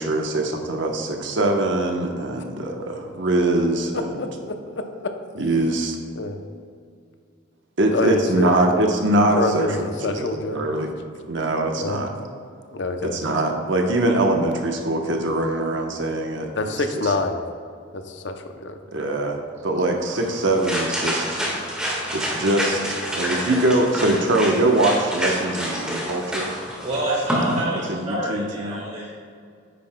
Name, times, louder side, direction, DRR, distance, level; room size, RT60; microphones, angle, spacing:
voice 1, 0.0-4.2 5.4-6.0 7.8-10.9 11.3-12.1 13.0-16.7 18.9-21.4 22.1-26.5 27.5-28.8, right 1 dB, 70° right, 3 dB, 1.0 m, -23 dB
voice 2, 3.9-4.8 6.2-6.4 7.9-8.5 9.4-10.6 11.8-12.0 12.7-13.2 16.5-17.4 17.9-18.8, left 3 dB, 60° left, 6 dB, 0.7 m, -26 dB
sound 1, 20.0-27.6, equal, 5° right, 1.6 m, -28 dB
voice 3, 26.7-29.1, right 1 dB, 35° right, -6 dB, 1.5 m, -28 dB
9.4 x 9.3 x 2.2 m, 2.2 s
head